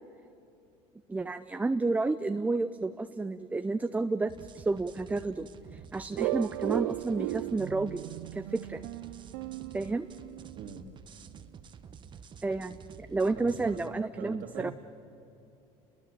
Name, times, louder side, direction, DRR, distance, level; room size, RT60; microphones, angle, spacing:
voice 1, 1.1-8.0 8.3-8.8 9.7-10.1 12.4-14.7, right 3 dB, 10° right, 10 dB, 0.5 m, -31 dB
sound 1, 4.3-13.9, right 6 dB, 35° right, 1.2 m, -50 dB
sound 2, 6.2-10.7, right 20 dB, 80° right, 0.5 m, -36 dB
voice 2, 13.3-13.9 14.2-14.7, right 8 dB, 65° right, 5 dB, 2.3 m, -43 dB
29.5 x 21.5 x 7.2 m, 2.7 s
supercardioid pair, 110°, 14 cm